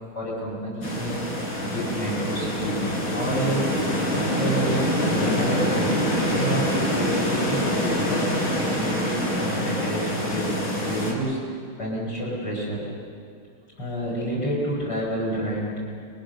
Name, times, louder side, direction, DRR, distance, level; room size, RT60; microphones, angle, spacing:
voice 1, 0.1-1.2 1.6-2.8 3.1-3.6 4.2-8.3 8.6-10.4 10.8-11.4 11.8-12.8 13.8-15.8, right 1 dB, 50° left, -5 dB, 6.5 m, -29 dB
sound 1, 0.8-11.1, equal, 70° left, 5.2 m, -25 dB
30.0 x 21.0 x 6.7 m, 2.3 s
omnidirectional pair, 2.3 m